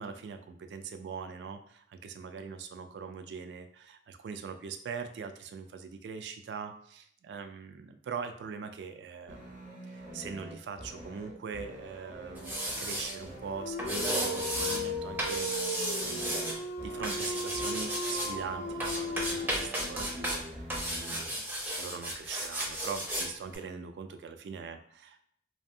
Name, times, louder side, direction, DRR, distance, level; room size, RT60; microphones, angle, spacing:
voice 1, 0.0-15.8 16.0-20.6 20.9-21.5 21.7-25.2, right 5 dB, 70° right, 8 dB, 0.3 m, -42 dB
sound 1, 9.3-21.3, equal, 50° right, 0.7 m, -45 dB
sound 2, 12.4-13.1 13.8-14.8 15.2-16.5 17.0-18.3 18.8-20.4 20.7-23.3 23.5-23.6, right 1 dB, 10° right, 0.5 m, -34 dB
Dog, 13.5-19.9, left 1 dB, 70° left, 0.4 m, -36 dB
2.6 x 2.2 x 2.6 m, 0.66 s
head